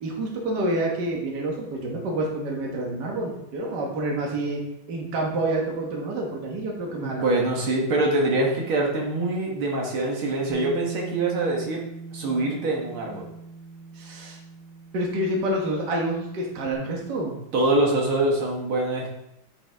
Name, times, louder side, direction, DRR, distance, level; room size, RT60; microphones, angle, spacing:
voice 1, 0.0-4.6 4.9-7.2 13.9-14.4 14.9-17.3, right 1 dB, 55° right, -1 dB, 1.8 m, -28 dB
voice 2, 6.9-11.8 12.1-13.3 17.5-19.1, right 2 dB, 80° right, -1 dB, 2.2 m, -24 dB
Bass guitar, 10.5-16.7, right 1 dB, 50° left, 1.2 m, -41 dB
9.4 x 5.4 x 3.4 m, 0.82 s
omnidirectional pair, 2.3 m